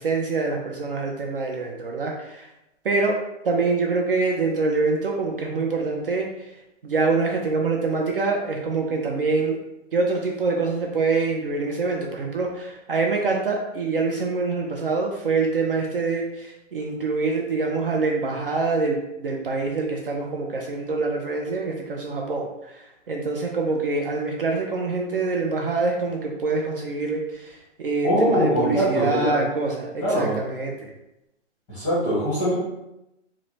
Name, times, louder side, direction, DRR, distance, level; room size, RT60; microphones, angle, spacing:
voice 1, 0.0-2.5 2.8-3.2 3.4-6.5 6.8-9.6 9.9-30.9, right 3 dB, 50° right, 0 dB, 0.4 m, -25 dB
voice 2, 28.0-29.4 30.0-30.4 31.7-32.6, equal, 5° left, -12 dB, 0.7 m, -22 dB
4.8 x 2.1 x 2.7 m, 0.90 s
hypercardioid pair, 175°, 37 cm